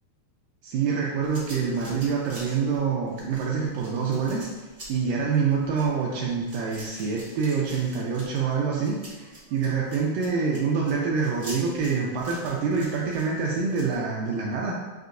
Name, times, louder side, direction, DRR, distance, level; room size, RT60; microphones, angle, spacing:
voice 1, 0.6-4.5 4.9-14.7, right 5 dB, 80° right, -3 dB, 2.0 m, -26 dB
sound 1, 1.2-13.9, right 1 dB, 65° right, 0.7 m, -45 dB
7.6 x 2.7 x 2.5 m, 1.2 s
omnidirectional pair, 4.1 m